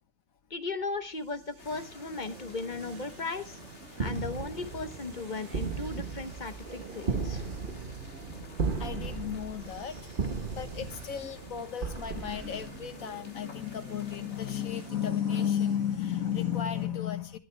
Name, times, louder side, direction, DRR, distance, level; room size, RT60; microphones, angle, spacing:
voice 1, 0.5-3.6 4.0-7.4, left 3 dB, 35° left, 10 dB, 1.1 m, -36 dB
sound 1, 0.9-16.9, right 8 dB, 65° right, 1.2 m, -51 dB
sound 2, 1.6-14.9, left 4 dB, 55° left, 2.0 m, -51 dB
sound 3, 3.9-13.3, right 4 dB, 40° right, 1.3 m, -36 dB
voice 2, 8.3-10.1 10.4-17.4, left 9 dB, 85° left, 10 dB, 1.7 m, -33 dB
22.0 x 9.1 x 3.3 m, 0.30 s
omnidirectional pair, 1.4 m